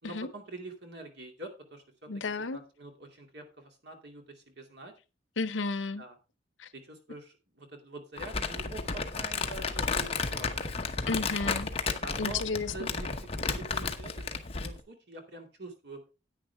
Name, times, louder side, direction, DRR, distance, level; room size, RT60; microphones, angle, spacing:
voice 1, 0.0-2.1 2.5-4.9 6.0-6.1 6.7-10.5 12.0-14.2 14.5-16.0, right 2 dB, 60° right, 2.4 m, -45 dB
voice 2, 2.1-2.6 5.4-6.0 6.6-6.7 11.1-11.7 12.2-12.9, left 4 dB, 75° left, 0.8 m, -32 dB
Crumpling crinkling, 8.2-14.8, left 4 dB, 30° left, 1.0 m, -33 dB
10.0 x 9.1 x 3.5 m
head